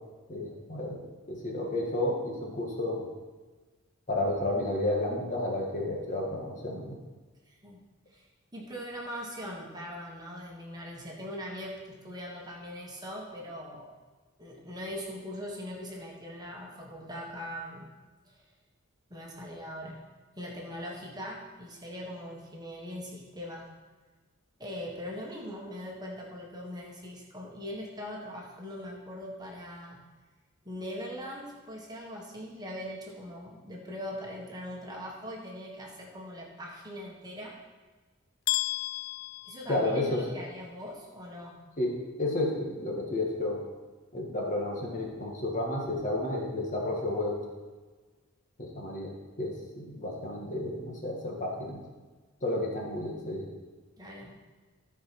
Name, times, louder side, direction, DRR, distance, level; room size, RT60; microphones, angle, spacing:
voice 1, 0.3-1.0 1.3-3.1 4.1-7.0 39.7-40.3 41.8-43.6 44.1-47.4 48.6-51.8 52.4-53.5, left 1 dB, 40° left, -1 dB, 1.9 m, -31 dB
voice 2, 7.5-7.8 8.1-8.2 8.5-13.9 14.4-17.9 18.2-18.4 19.1-20.0 20.4-23.7 24.6-30.0 30.6-37.6 39.4-41.6 54.0-54.4, equal, 20° right, -2 dB, 1.5 m, -41 dB
sound 1, 38.5-40.5, left 18 dB, 75° left, 0.4 m, -33 dB
14.5 x 4.9 x 6.0 m, 1.3 s
head